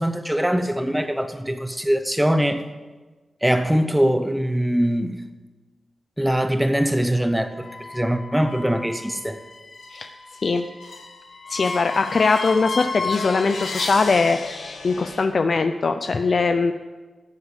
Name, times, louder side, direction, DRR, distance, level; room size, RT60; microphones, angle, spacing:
voice 1, 0.0-2.6 3.4-5.2 6.2-9.4, equal, 5° right, 9 dB, 0.9 m, -22 dB
sound 1, 7.5-15.2, left 4 dB, 60° left, 1.9 m, -33 dB
voice 2, 11.5-16.7, left 4 dB, 45° left, 8 dB, 0.5 m, -21 dB
14.5 x 8.2 x 8.3 m, 1.3 s
wide cardioid pair, 175°, 0 cm